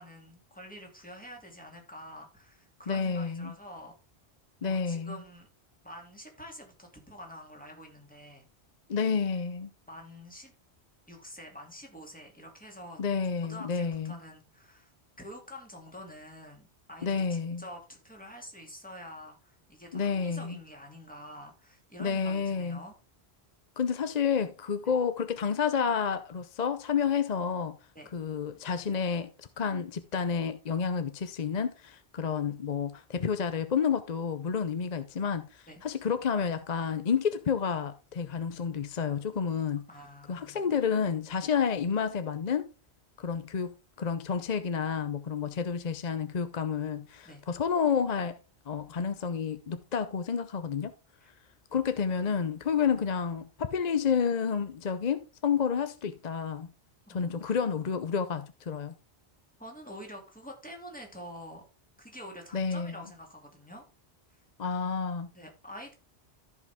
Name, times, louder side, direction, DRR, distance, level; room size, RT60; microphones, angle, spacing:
voice 1, 0.0-3.9 4.6-5.5 5.8-8.5 9.9-10.5 11.1-13.0 13.5-14.9 15.2-22.9 24.8-24.9 27.9-28.1 35.7-35.8 39.9-40.7 47.2-47.4 51.2-51.3 57.1-57.6 59.6-61.6 62.0-63.8 64.3-64.4 65.3-65.9, equal, 5° left, 2.6 m, -47 dB
voice 2, 2.9-3.5 4.6-5.2 8.9-9.7 13.0-14.2 17.0-17.6 19.9-20.6 22.0-22.8 23.8-27.8 28.1-39.8 40.3-42.7 43.2-48.4 48.7-50.9 51.7-56.7 57.1-58.9 62.5-62.9 64.6-65.3, left 6 dB, 45° left, 0.7 m, -30 dB
14.5 x 5.2 x 3.5 m
omnidirectional pair, 1.1 m